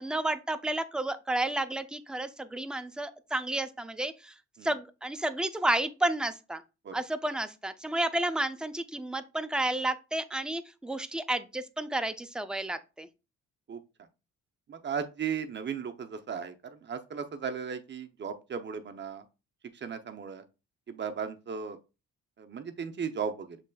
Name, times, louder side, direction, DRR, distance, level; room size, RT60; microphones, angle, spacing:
voice 1, 0.0-4.3 4.6-6.6 6.9-13.1, right 1 dB, 5° right, 0.4 m, -31 dB
voice 2, 14.7-19.2 19.8-20.4 20.9-21.8 22.4-23.6, right 6 dB, 35° right, 0.6 m, -36 dB
6.4 x 3.2 x 2.3 m
cardioid pair, 90°, 30 cm